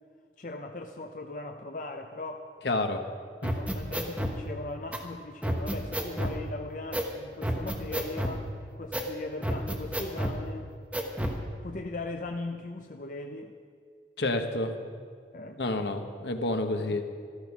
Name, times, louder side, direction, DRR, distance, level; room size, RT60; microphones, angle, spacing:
voice 1, 0.4-2.5 3.5-10.7 11.6-13.5 15.3-15.6 16.8-17.0, left 2 dB, 45° left, 4 dB, 0.6 m, -39 dB
voice 2, 2.6-3.0 3.4-3.5 14.2-14.7 15.6-17.0, left 2 dB, 75° left, 5 dB, 1.2 m, -29 dB
sound 1, 3.4-4.4 4.9-5.0 5.4-6.4 6.9-7.1 7.4-8.4 8.9-9.1 9.4-10.4 10.9-11.4, equal, 10° right, 1.1 m, -30 dB
13.5 x 13.5 x 6.0 m, 2.1 s
head